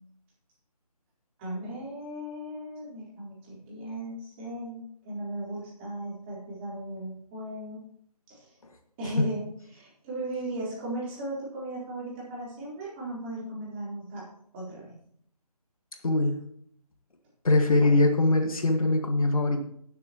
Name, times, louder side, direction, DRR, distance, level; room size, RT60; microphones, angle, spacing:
voice 1, 1.4-7.8 8.3-8.6 9.0-14.3 14.5-14.9, right 1 dB, 15° right, -7 dB, 3.9 m, -37 dB
voice 2, 16.0-16.4 17.4-19.6, left 2 dB, 60° left, 4 dB, 1.7 m, -22 dB
18.0 x 7.4 x 3.0 m, 0.67 s
figure-of-eight pair, 160°, 20 cm